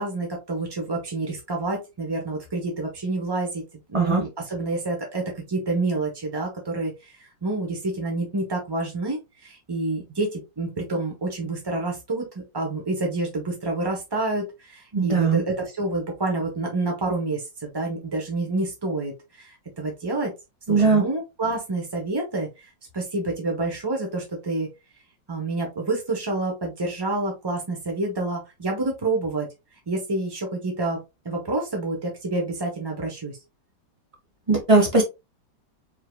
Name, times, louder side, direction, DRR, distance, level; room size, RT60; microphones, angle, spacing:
voice 1, 0.0-3.6 3.9-12.3 12.5-20.3 20.7-22.7 22.9-24.7 25.3-29.5 29.9-31.0 31.2-33.4, right 2 dB, 35° right, 1 dB, 0.3 m, -28 dB
voice 2, 14.9-15.4 20.7-21.0 34.5-35.0, right 3 dB, 20° right, 1 dB, 0.9 m, -19 dB
4.6 x 3.4 x 2.2 m, 0.24 s
omnidirectional pair, 2.1 m